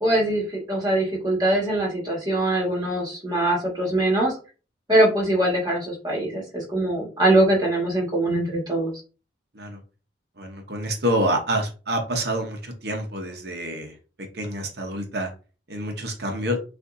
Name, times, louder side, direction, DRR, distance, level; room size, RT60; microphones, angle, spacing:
voice 1, 0.0-4.4 4.9-8.9, right 1 dB, 20° right, -2 dB, 1.6 m, -22 dB
voice 2, 10.4-13.9 14.3-15.3 15.7-16.6, right 1 dB, 55° right, 4 dB, 0.8 m, -27 dB
6.5 x 2.5 x 2.6 m, 0.35 s
head